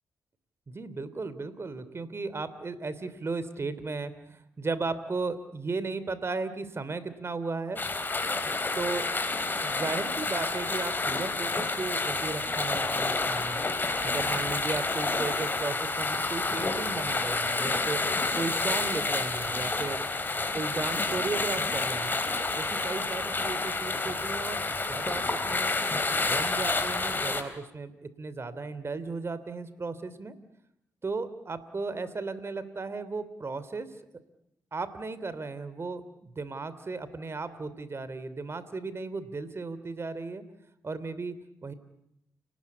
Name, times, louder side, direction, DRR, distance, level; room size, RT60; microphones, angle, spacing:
voice 1, 0.7-7.8 8.7-9.1 9.6-13.6 14.0-18.0 18.3-20.0 20.5-22.2 22.5-25.7 26.2-30.3 31.0-33.9 34.7-40.4 40.8-41.4 41.6-41.7, right 3 dB, 40° right, 14 dB, 2.9 m, -35 dB
sound 1, 7.8-27.4, left 3 dB, 30° left, 3.8 m, -29 dB
30.0 x 19.0 x 8.5 m, 0.82 s
cardioid pair, 65°, 7 cm